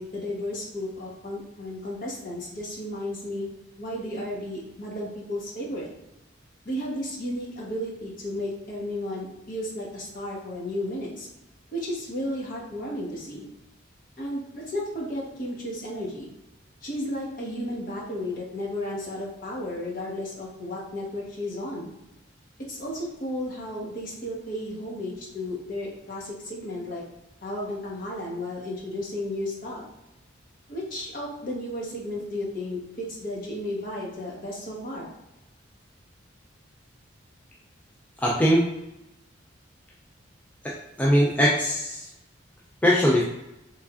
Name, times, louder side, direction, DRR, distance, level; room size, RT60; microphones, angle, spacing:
voice 1, 0.0-3.5 3.8-5.9 6.6-11.3 11.7-13.5 14.2-16.3 16.8-21.9 22.7-27.0 27.4-29.8 30.7-35.1, left 1 dB, 45° left, -4 dB, 1.0 m, -33 dB
voice 2, 38.2-38.6 40.6-42.1 42.8-43.2, equal, 10° left, -4 dB, 0.3 m, -21 dB
3.4 x 3.2 x 2.4 m, 0.92 s
head